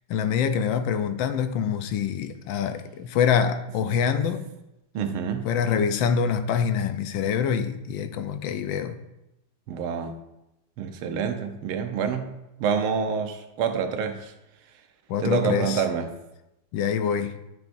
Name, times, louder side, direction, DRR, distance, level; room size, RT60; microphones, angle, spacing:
voice 1, 0.1-4.5 5.4-9.0 15.1-15.8 16.7-17.4, left 7 dB, 75° left, 1.3 m, -25 dB
voice 2, 4.9-5.5 9.7-10.2 10.8-14.3 15.2-16.2, right 6 dB, 90° right, 1.6 m, -27 dB
12.5 x 5.8 x 2.6 m
omnidirectional pair, 2.2 m